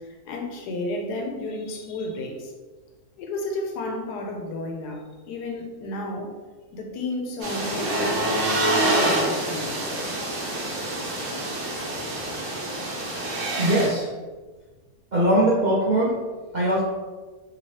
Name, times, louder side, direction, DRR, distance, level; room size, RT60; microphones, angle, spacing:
voice 1, 0.0-2.5 3.2-6.3 6.7-9.9, left 2 dB, 85° left, 2 dB, 1.2 m, -32 dB
sound 1, 7.4-13.9, right 1 dB, 55° right, 0.9 m, -26 dB
voice 2, 13.6-14.1 15.1-16.2 16.5-16.8, right 1 dB, 75° right, -7 dB, 0.4 m, -21 dB
3.0 x 2.8 x 3.0 m, 1.3 s
omnidirectional pair, 1.7 m